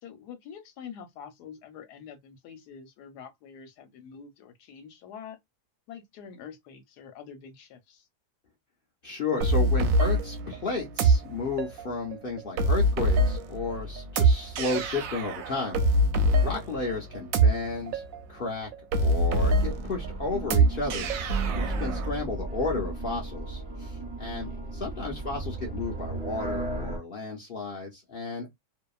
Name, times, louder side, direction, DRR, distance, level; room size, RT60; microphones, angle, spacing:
voice 1, 0.0-5.4 5.9-8.1 24.4-24.9, left 7 dB, 80° left, 1.2 m, -46 dB
voice 2, 9.0-15.8 16.4-18.0 18.3-18.7 19.0-21.1 21.5-28.5, left 3 dB, 55° left, 0.6 m, -33 dB
sound 1, 9.4-22.1, right 2 dB, 70° right, 0.9 m, -25 dB
sound 2, 19.6-27.0, right 2 dB, 35° right, 0.7 m, -35 dB
2.7 x 2.3 x 2.3 m
omnidirectional pair, 1.7 m